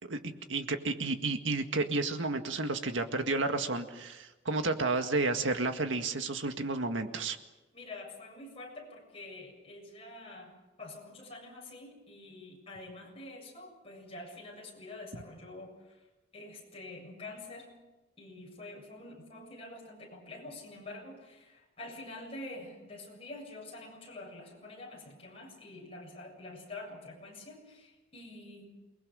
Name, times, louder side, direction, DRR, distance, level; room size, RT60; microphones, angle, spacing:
voice 1, 0.0-7.4, right 3 dB, 80° right, 6 dB, 1.9 m, -31 dB
voice 2, 7.7-10.5 10.8-16.1 16.3-17.7 18.2-28.7, left 2 dB, 30° left, -2 dB, 7.5 m, -47 dB
28.5 x 20.5 x 6.4 m, 1.1 s
head